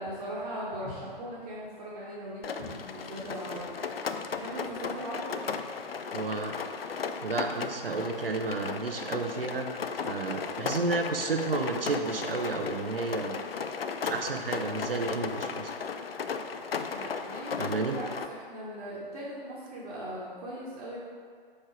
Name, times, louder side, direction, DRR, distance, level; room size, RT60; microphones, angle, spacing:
voice 1, 0.0-3.8 4.3-5.4 16.9-21.0, equal, 45° right, -9 dB, 1.4 m, -39 dB
Rain, 2.4-18.3, left 5 dB, 80° left, 0.4 m, -36 dB
voice 2, 6.1-6.5 7.2-9.7 10.0-13.4 14.0-15.7 17.6-18.0, right 3 dB, 75° right, 3 dB, 0.8 m, -31 dB
5.0 x 4.3 x 4.5 m, 2.1 s
figure-of-eight pair, 120°, 29 cm